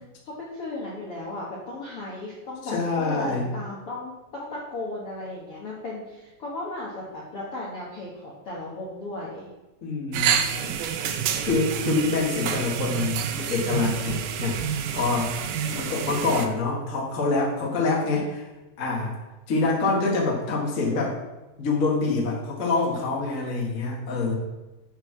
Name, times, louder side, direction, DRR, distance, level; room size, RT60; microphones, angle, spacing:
voice 1, 0.0-9.5 15.6-16.1, left 2 dB, 60° left, -5 dB, 1.5 m, -36 dB
voice 2, 2.6-3.4 9.8-10.8 11.4-14.6 14.9-15.3 15.7-18.4 18.8-19.1 19.5-21.2 21.6-24.3, left 3 dB, 40° left, -2 dB, 1.1 m, -26 dB
sound 1, 10.1-16.5, right 8 dB, 90° right, 1.8 m, -28 dB
8.6 x 4.7 x 5.9 m, 1.1 s
omnidirectional pair, 4.5 m